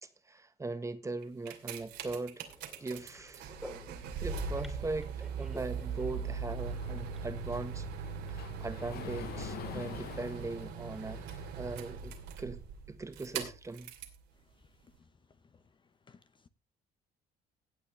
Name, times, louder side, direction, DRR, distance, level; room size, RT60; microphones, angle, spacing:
voice 1, 0.0-2.5 2.8-3.5 4.2-7.9 8.3-11.2 11.5-12.6 12.9-13.9, right 3 dB, 20° right, 1.4 m, -40 dB
sound 1, 1.2-14.2 14.9-15.0, right 6 dB, 85° right, 2.6 m, -40 dB
sound 2, 2.4-10.7, equal, ahead, 2.7 m, -54 dB
Sliding door, 6.8-11.8, left 12 dB, 65° left, 0.7 m, -47 dB
voice 2, 14.5-15.1 15.5-15.6 16.1-16.5, left 5 dB, 30° left, 0.8 m, -62 dB
17.0 x 8.4 x 3.4 m
cardioid pair, 110°, 17 cm